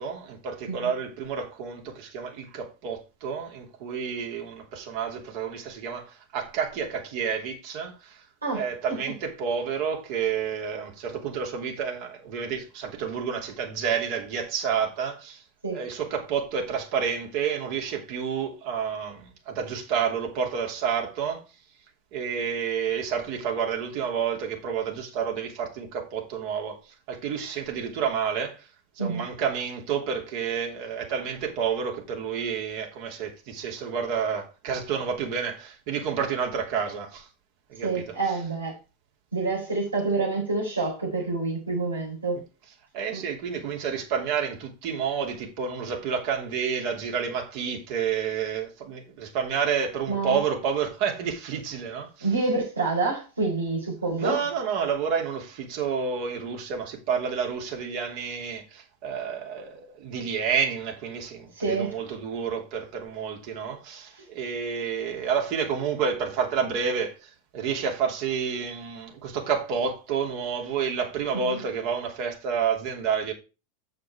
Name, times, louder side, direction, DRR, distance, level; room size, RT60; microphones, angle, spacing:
voice 1, 0.0-8.2 8.5-15.4 15.7-21.4 22.1-28.7 28.9-37.3 37.7-38.4 42.9-52.3 54.2-73.3, right 6 dB, 50° right, 2.9 m, -29 dB
voice 2, 37.8-38.8 39.3-42.4 43.1-43.2 50.1-50.4 52.2-54.4 61.6-61.9 71.3-71.6, right 3 dB, 85° right, 4.5 m, -27 dB
7.9 x 6.7 x 4.5 m
figure-of-eight pair, 85°, 0 cm